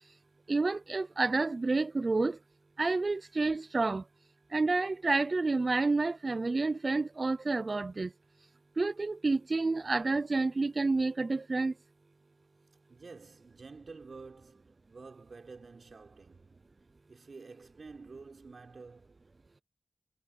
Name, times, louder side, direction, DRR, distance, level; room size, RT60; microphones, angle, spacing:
voice 1, 0.5-2.4 2.8-4.0 4.5-8.1 8.8-11.7, right 3 dB, 50° right, 0.5 m, -29 dB
voice 2, 12.9-19.3, right 4 dB, 65° right, 6.0 m, -50 dB
cardioid pair, 60°, 0 cm